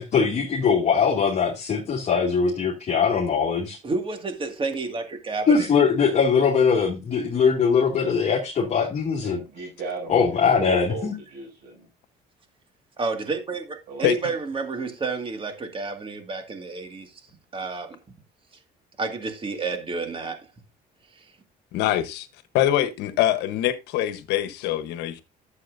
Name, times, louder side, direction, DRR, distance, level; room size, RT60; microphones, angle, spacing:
voice 1, 0.0-3.8 5.5-9.4 10.1-11.1, left 6 dB, 40° left, 2.3 m, -21 dB
voice 2, 3.8-5.7 13.0-18.0 19.0-20.5 21.1-21.3, right 3 dB, 30° right, 2.1 m, -30 dB
voice 3, 9.2-11.9 13.9-14.1, right 3 dB, 80° right, 6.2 m, -36 dB
voice 4, 21.7-22.3 22.5-25.2, left 12 dB, 90° left, 1.2 m, -24 dB
11.5 x 7.5 x 2.7 m
cardioid pair, 110°, 17 cm